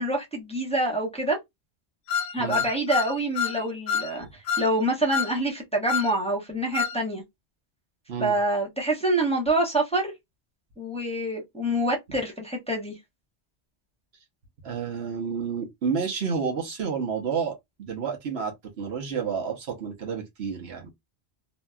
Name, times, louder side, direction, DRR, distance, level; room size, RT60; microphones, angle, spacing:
voice 1, 0.0-1.4 2.3-7.2 8.2-10.1 10.8-12.9, right 1 dB, 5° left, 0.9 m, -26 dB
sound 1, 2.1-3.6 3.9-4.1 4.5-4.7 5.1-5.3 5.9-6.1 6.7-7.0, left 7 dB, 85° left, 0.8 m, -27 dB
voice 2, 14.6-20.9, right 6 dB, 70° right, 1.2 m, -30 dB
3.0 x 2.7 x 2.2 m
omnidirectional pair, 1.1 m